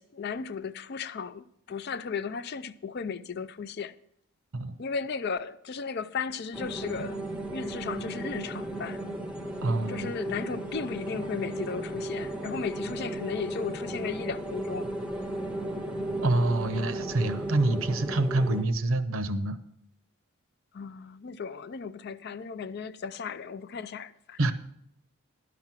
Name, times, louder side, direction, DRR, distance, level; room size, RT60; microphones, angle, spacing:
voice 1, 0.0-4.0 4.8-7.2 7.5-9.0 9.9-14.9 20.7-24.4, left 5 dB, 45° left, 0.4 m, -35 dB
sound 1, 6.5-18.6, right 1 dB, 5° right, 0.7 m, -35 dB
voice 2, 9.6-10.1 16.2-19.6 24.4-24.5, right 2 dB, 65° right, 0.8 m, -26 dB
11.5 x 6.0 x 7.4 m
head